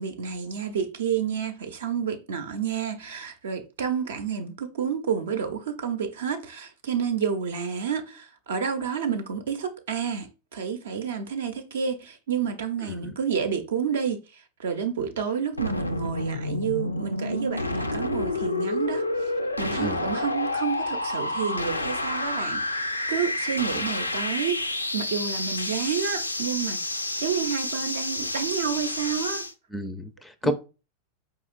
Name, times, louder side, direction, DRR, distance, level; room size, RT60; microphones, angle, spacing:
voice 1, 0.0-19.3 19.6-26.8 27.2-29.4 30.4-30.5, right 7 dB, 60° right, 0.6 m, -30 dB
sound 1, 15.6-29.5, left 2 dB, 85° left, 0.3 m, -29 dB
voice 2, 19.8-20.1 29.7-30.5, left 1 dB, 5° left, 0.4 m, -30 dB
4.8 x 3.0 x 2.4 m
figure-of-eight pair, 90°, 0 cm